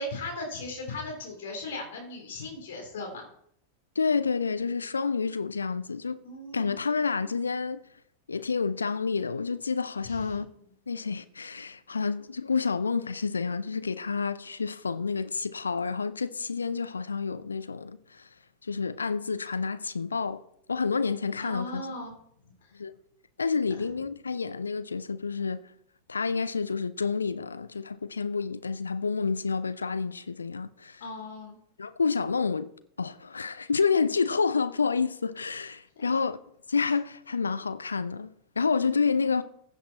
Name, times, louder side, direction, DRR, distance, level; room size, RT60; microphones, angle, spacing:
voice 1, 0.0-3.3 6.2-6.8 10.0-10.4 21.4-22.1 22.6-22.7 23.6-23.8 31.0-31.6 35.9-36.2, left 2 dB, 60° left, 3.3 m, -38 dB
voice 2, 4.0-6.2 6.5-7.8 8.3-10.5 10.9-18.3 18.6-20.4 20.7-21.8 22.7-22.9 23.4-25.6 26.1-31.0 31.8-32.7 33.0-36.4 36.7-39.4, left 5 dB, 75° left, 0.6 m, -29 dB
15.5 x 8.3 x 4.2 m
figure-of-eight pair, 90°, 0 cm